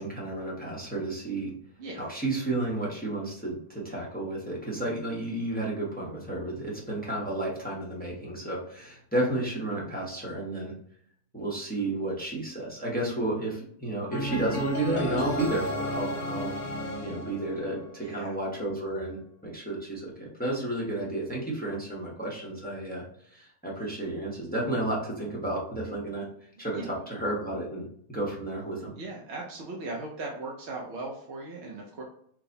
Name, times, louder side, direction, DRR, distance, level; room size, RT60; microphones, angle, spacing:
voice 1, 0.0-1.5 2.0-10.7 11.3-16.5 17.0-23.0 23.3-26.2 26.6-28.9, right 1 dB, 10° left, -4 dB, 0.6 m, -32 dB
voice 2, 1.8-2.1 18.0-18.4 26.6-26.9 29.0-32.0, right 2 dB, 60° right, -2 dB, 0.7 m, -38 dB
sound 1, 14.1-18.2, equal, 60° left, 1.1 m, -32 dB
4.6 x 2.1 x 2.7 m, 0.66 s
omnidirectional pair, 1.6 m